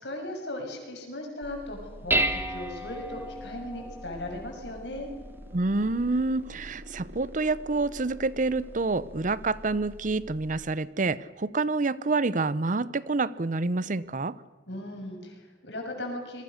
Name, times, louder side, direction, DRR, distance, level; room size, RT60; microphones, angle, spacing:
voice 1, 0.0-5.1 14.7-16.4, left 1 dB, 85° left, 2 dB, 6.8 m, -37 dB
Dishes pots and pans, 1.4-10.7, right 1 dB, 15° right, 1.6 m, -36 dB
sound 1, 3.8-10.2, right 1 dB, 75° right, 3.3 m, -51 dB
voice 2, 5.5-14.3, right 3 dB, 45° right, 18 dB, 0.7 m, -27 dB
26.5 x 22.5 x 6.5 m, 1.4 s
head